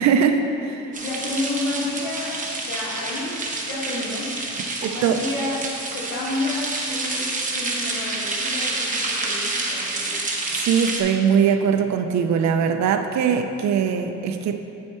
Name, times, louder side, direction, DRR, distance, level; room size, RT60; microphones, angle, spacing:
voice 1, 0.0-0.8 4.8-5.2 10.5-14.6, right 7 dB, 65° right, 7 dB, 0.5 m, -21 dB
voice 2, 0.9-3.4 3.6-4.4 4.8-10.3, left 2 dB, 85° left, -4 dB, 1.5 m, -30 dB
sound 1, 0.9-11.0, right 2 dB, 25° right, 1.1 m, -28 dB
8.7 x 4.4 x 4.3 m, 2.8 s
cardioid pair, 90°, 30 cm